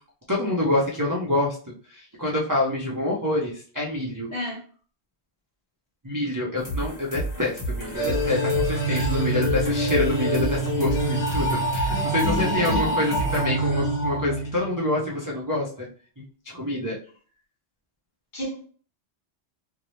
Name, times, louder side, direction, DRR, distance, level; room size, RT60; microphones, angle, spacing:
voice 1, 0.3-1.6 1.9-4.3 6.0-15.9 16.5-17.0, left 1 dB, 30° right, 0.3 m, -26 dB
sound 1, 6.6-13.5, right 1 dB, 25° left, 1.1 m, -32 dB
sound 2, 7.9-14.9, right 1 dB, 70° left, 1.3 m, -26 dB
voice 2, 11.9-13.2 18.3-18.6, left 2 dB, 50° left, 1.1 m, -31 dB
2.7 x 2.0 x 3.0 m
omnidirectional pair, 1.1 m